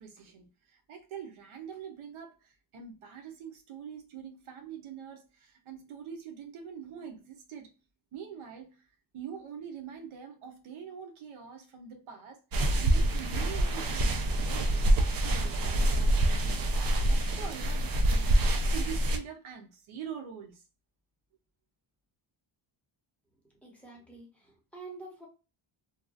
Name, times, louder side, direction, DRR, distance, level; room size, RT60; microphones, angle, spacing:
voice 1, 0.0-7.7 8.1-8.8 9.1-20.6, right 7 dB, 85° right, 0.9 m, -44 dB
sound 1, 12.5-19.2, right 1 dB, 45° right, 0.6 m, -26 dB
voice 2, 23.5-25.3, right 3 dB, 5° left, 1.0 m, -48 dB
3.0 x 2.3 x 2.3 m
cardioid pair, 115°, 48 cm